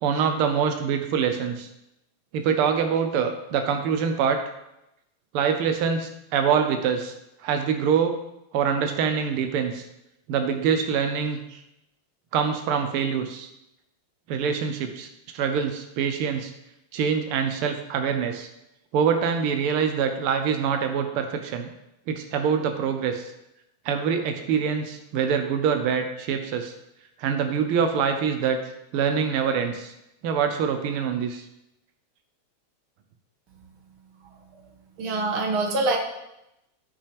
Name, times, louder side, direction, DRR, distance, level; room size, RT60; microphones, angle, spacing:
voice 1, 0.0-1.7 2.3-4.4 5.3-7.1 7.4-8.2 8.5-9.8 10.3-11.6 12.3-13.5 14.3-15.1 15.3-16.5 16.9-18.5 18.9-21.7 22.1-23.2 23.8-26.7 27.2-28.6 28.9-29.9 30.2-31.4, right 7 dB, 90° right, 6 dB, 1.2 m, -25 dB
voice 2, 35.0-36.0, right 3 dB, 55° right, 2 dB, 1.7 m, -24 dB
14.0 x 5.5 x 3.4 m, 0.86 s
omnidirectional pair, 3.4 m